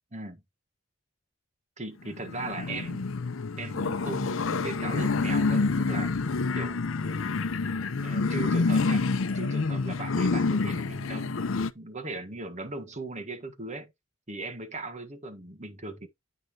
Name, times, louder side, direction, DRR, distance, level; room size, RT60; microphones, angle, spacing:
voice 1, 1.8-3.1 3.6-6.1 6.5-7.4 8.0-9.1 9.3-11.4 11.7-13.9 14.3-16.1, right 2 dB, 35° right, 1.5 m, -38 dB
sound 1, 2.0-11.7, left 4 dB, 70° left, 0.6 m, -28 dB
9.2 x 5.4 x 3.2 m
head